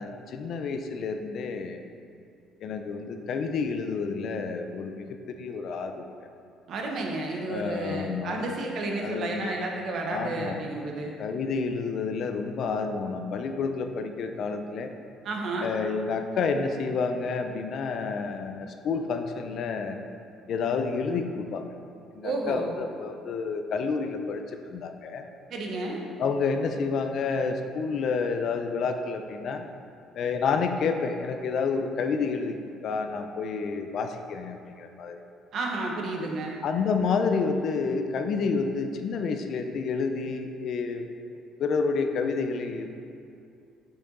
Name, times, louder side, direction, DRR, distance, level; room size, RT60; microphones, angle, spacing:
voice 1, 0.0-1.8 2.6-5.1 5.4-6.1 7.5-8.5 8.9-9.5 10.1-10.6 11.2-14.9 15.6-20.0 20.5-21.6 22.1-25.2 26.2-29.7 30.1-35.2 36.6-41.1 41.6-42.9, left 5 dB, 50° left, 6 dB, 0.5 m, -29 dB
voice 2, 6.7-11.2 15.2-15.7 22.2-22.7 25.5-26.0 35.5-36.6, right 2 dB, 50° right, 0 dB, 1.1 m, -31 dB
6.7 x 5.9 x 3.8 m, 2.4 s
cardioid pair, 145°, 0 cm